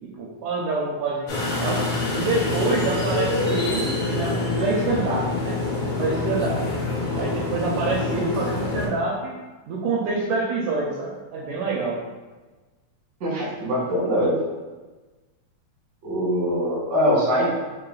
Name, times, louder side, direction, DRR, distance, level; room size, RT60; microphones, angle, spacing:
voice 1, 0.0-6.6 7.1-9.4 9.7-12.0, right 3 dB, 80° right, -2 dB, 1.8 m, -26 dB
sound 1, 1.3-8.9, left 3 dB, 85° left, 2.6 m, -26 dB
voice 2, 13.2-14.4 16.0-17.5, equal, 40° right, -6 dB, 1.1 m, -22 dB
4.9 x 3.2 x 2.3 m, 1.2 s
omnidirectional pair, 3.4 m